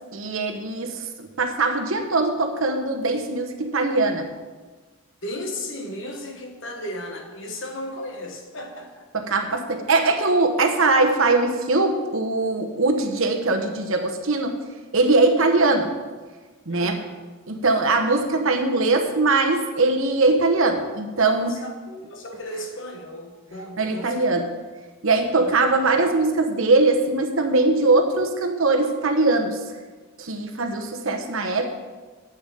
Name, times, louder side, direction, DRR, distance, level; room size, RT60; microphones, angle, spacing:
voice 1, 0.1-4.3 9.1-14.5 14.9-15.9 16.7-17.0 17.5-21.6 23.8-24.5 25.0-29.6 30.2-31.8, right 3 dB, 60° right, 4 dB, 1.0 m, -21 dB
voice 2, 5.2-9.1 16.7-17.2 21.5-24.1 25.4-25.5, left 1 dB, 55° left, 2 dB, 1.4 m, -35 dB
7.0 x 6.8 x 7.7 m, 1.4 s
head